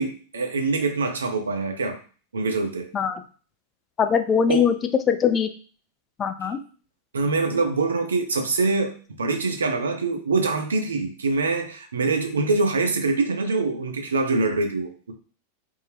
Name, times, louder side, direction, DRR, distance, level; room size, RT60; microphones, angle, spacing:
voice 1, 0.0-2.0 2.3-2.9 4.5-4.7 7.1-15.1, right 3 dB, 70° right, 5 dB, 0.5 m, -24 dB
voice 2, 4.0-4.7 5.1-5.5 6.2-6.6, left 7 dB, 25° left, 8 dB, 0.3 m, -21 dB
3.5 x 2.1 x 3.2 m, 0.38 s
figure-of-eight pair, 90°, 0 cm